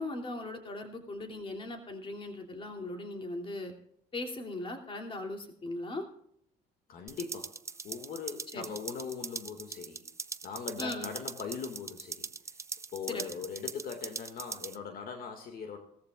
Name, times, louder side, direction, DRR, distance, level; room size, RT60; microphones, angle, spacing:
voice 1, 0.0-3.7 4.1-6.0 8.5-8.7 10.8-11.1 13.1-13.2, left 2 dB, 30° left, 3 dB, 2.9 m, -38 dB
voice 2, 6.9-7.5 7.8-10.0 10.4-12.3 12.9-15.8, left 6 dB, 60° left, 4 dB, 2.0 m, -40 dB
sound 1, 7.1-14.8, right 4 dB, 15° right, 0.6 m, -42 dB
19.0 x 14.0 x 2.5 m, 0.71 s
cardioid pair, 110°, 17 cm